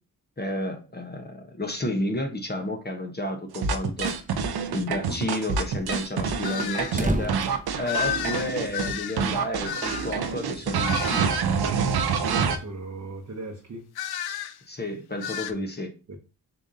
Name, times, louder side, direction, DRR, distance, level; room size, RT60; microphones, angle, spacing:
voice 1, 0.4-4.1 4.7-11.4 14.7-15.9, left 1 dB, 25° left, 1.0 m, -31 dB
sound 1, 3.5-8.9 9.2-12.6, right 6 dB, 70° right, 0.7 m, -27 dB
sound 2, 3.6-4.3 4.6-4.7 4.9-5.0 5.5-8.5, right 1 dB, 20° right, 0.8 m, -33 dB
sound 3, 6.4-7.0 7.8-10.2 10.8-11.3 13.9-14.6 15.2-15.5, left 9 dB, 75° left, 0.5 m, -32 dB
voice 2, 12.1-13.8 15.5-15.6 16.1-16.2, right 2 dB, 45° right, 1.0 m, -38 dB
6.8 x 2.6 x 2.6 m
cardioid pair, 45°, 39 cm